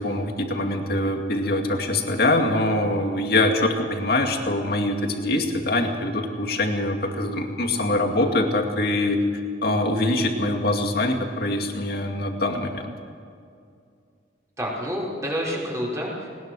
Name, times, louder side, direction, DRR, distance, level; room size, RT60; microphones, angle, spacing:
voice 1, 0.0-12.9, left 1 dB, 55° left, 3 dB, 2.4 m, -24 dB
voice 2, 14.6-16.3, equal, 15° right, -3 dB, 5.2 m, -28 dB
20.5 x 20.0 x 6.3 m, 2.4 s
head